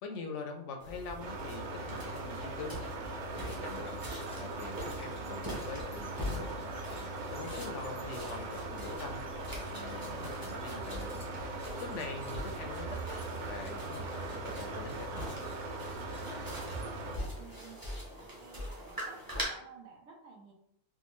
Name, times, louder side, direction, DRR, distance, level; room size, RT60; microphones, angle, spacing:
voice 1, 0.0-2.8 3.3-6.5 7.1-9.2 9.6-11.2 11.8-13.0 13.4-15.3, left 4 dB, 70° left, 4 dB, 0.8 m, -44 dB
sound 1, 0.8-19.4, equal, 20° right, 0.7 m, -44 dB
sound 2, 1.2-17.2, right 2 dB, 65° right, 0.4 m, -40 dB
sound 3, 3.4-17.3, equal, 10° left, 0.3 m, -57 dB
voice 2, 17.2-19.2 19.5-20.5, right 6 dB, 85° right, -1 dB, 1.3 m, -54 dB
3.6 x 2.3 x 3.0 m, 0.75 s
omnidirectional pair, 1.4 m